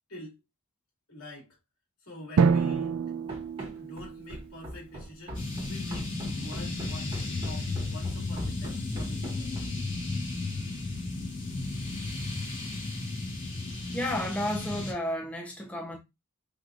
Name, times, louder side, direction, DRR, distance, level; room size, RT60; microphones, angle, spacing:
voice 1, 0.1-0.4 1.1-1.6 2.0-3.0 3.8-5.4 5.7-9.8, left 1 dB, 85° left, 2.4 m, -46 dB
Drum, 2.4-4.9, right 5 dB, 70° right, 0.4 m, -27 dB
Run, 3.3-9.9, right 1 dB, 25° right, 1.6 m, -42 dB
sound 1, 5.3-14.9, left 2 dB, 60° left, 2.4 m, -34 dB
voice 2, 13.9-16.0, left 1 dB, 5° left, 0.7 m, -32 dB
5.3 x 2.9 x 2.4 m
head